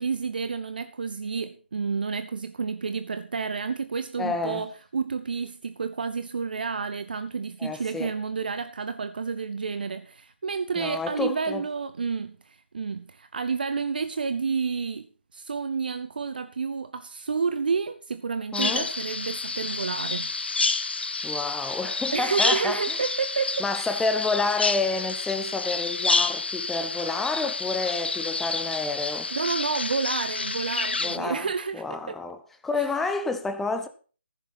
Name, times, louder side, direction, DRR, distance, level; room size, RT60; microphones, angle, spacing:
voice 1, 0.0-20.3 22.1-24.0 29.3-32.2 32.8-32.9, right 5 dB, 55° right, 0.8 m, -30 dB
voice 2, 4.2-4.7 7.6-8.1 10.8-11.6 18.5-18.9 21.2-23.0 23.6-29.3 31.0-31.5 31.7-33.9, left 3 dB, 5° left, 0.8 m, -29 dB
Bird vocalization bird call bird song, 18.5-31.2, left 3 dB, 65° left, 0.7 m, -29 dB
14.5 x 6.8 x 5.7 m
figure-of-eight pair, 145°, 6 cm